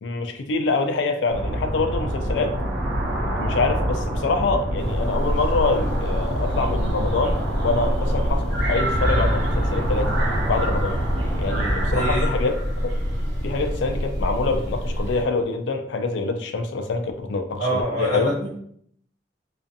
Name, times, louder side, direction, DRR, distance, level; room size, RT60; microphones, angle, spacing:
voice 1, 0.0-2.6 3.4-10.1 10.5-11.0 11.4-12.5 12.8-12.9 13.4-18.3, left 3 dB, 75° left, 6 dB, 0.4 m, -25 dB
sound 1, 1.3-12.2, right 1 dB, 65° right, 0.9 m, -26 dB
sound 2, 4.8-15.2, equal, 90° right, 1.0 m, -27 dB
Bowed string instrument, 9.0-12.1, right 1 dB, ahead, 0.4 m, -31 dB
voice 2, 11.9-12.3 17.6-18.6, right 1 dB, 40° right, -9 dB, 0.6 m, -25 dB
2.4 x 2.4 x 2.6 m, 0.65 s
head